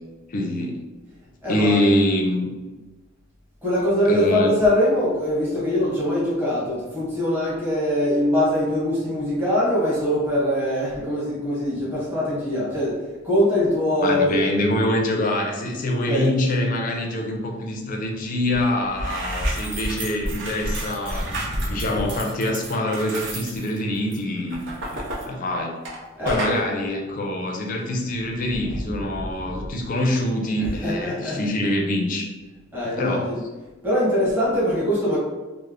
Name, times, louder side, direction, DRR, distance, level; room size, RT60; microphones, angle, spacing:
voice 1, 0.3-0.8 1.5-2.5 4.1-4.5 14.0-21.3 21.7-24.6 24.9-25.7 26.2-32.3 33.0-33.3, left 1 dB, 45° left, 1 dB, 0.4 m, -25 dB
voice 2, 1.4-1.8 3.6-13.0 13.2-14.4 16.0-16.3 21.2-21.8 26.2-26.7 28.6-29.0 30.5-31.5 32.7-33.4 33.8-35.2, left 1 dB, 10° right, -9 dB, 1.2 m, -23 dB
sound 1, 18.5-18.6 18.9-26.0 26.3-26.6, right 1 dB, 60° right, 0.7 m, -30 dB
3.2 x 2.0 x 3.5 m, 1.2 s
head